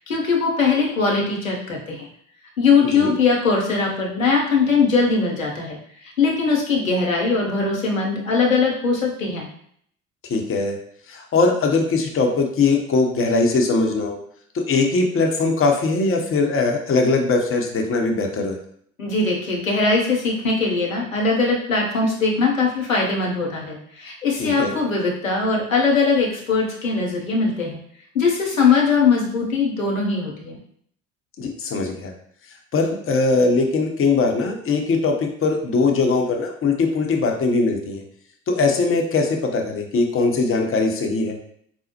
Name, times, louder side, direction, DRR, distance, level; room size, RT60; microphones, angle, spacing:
voice 1, 0.1-2.1 2.6-5.8 6.0-9.5 19.0-27.8 28.1-30.6, left 4 dB, 85° left, -2 dB, 0.8 m, -20 dB
voice 2, 10.3-10.8 11.1-14.2 14.5-18.6 24.4-24.7 31.4-32.1 32.7-38.0 38.5-41.4, left 3 dB, 35° left, 2 dB, 0.7 m, -21 dB
5.1 x 2.0 x 2.8 m, 0.64 s
figure-of-eight pair, 55°, 39 cm